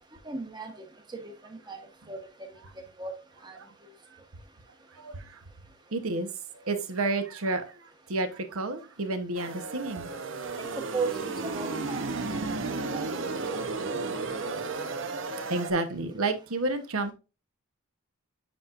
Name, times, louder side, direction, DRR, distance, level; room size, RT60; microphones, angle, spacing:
voice 1, 0.3-0.7 1.1-1.2 1.7-1.8 2.1-2.2 3.0-3.1 3.4-3.6 10.6-10.7 10.9-12.4 12.7-13.1 13.8-13.9, right 4 dB, 20° right, 1.0 m, -36 dB
voice 2, 4.9-5.4 5.9-6.3 6.5-10.1 10.4-10.8 15.5-17.1, right 2 dB, 75° right, 1.0 m, -31 dB
sound 1, 9.4-15.7, right 3 dB, 60° right, 0.7 m, -33 dB
8.3 x 4.6 x 2.5 m
head